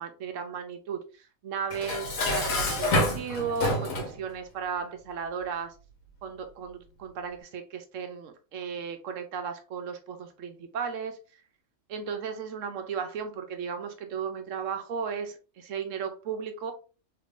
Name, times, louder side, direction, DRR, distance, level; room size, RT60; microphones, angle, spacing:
voice 1, 0.0-5.8 6.2-11.4 11.9-16.7, right 6 dB, 70° right, 0.9 m, -35 dB
Dishes pots and pans, 1.7-4.2, left 1 dB, 75° left, 1.4 m, -27 dB
3.5 x 3.1 x 2.4 m
omnidirectional pair, 1.5 m